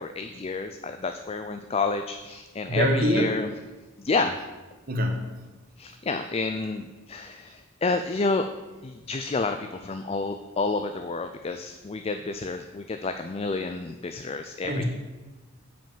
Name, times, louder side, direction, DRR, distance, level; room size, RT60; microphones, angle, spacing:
voice 1, 0.0-3.5 4.0-4.3 5.8-8.5 8.8-14.8, left 3 dB, 30° left, 7 dB, 0.4 m, -29 dB
voice 2, 2.7-3.4 4.9-5.3 14.6-14.8, equal, 45° right, 3 dB, 1.4 m, -24 dB
8.8 x 5.2 x 7.4 m, 1.2 s
head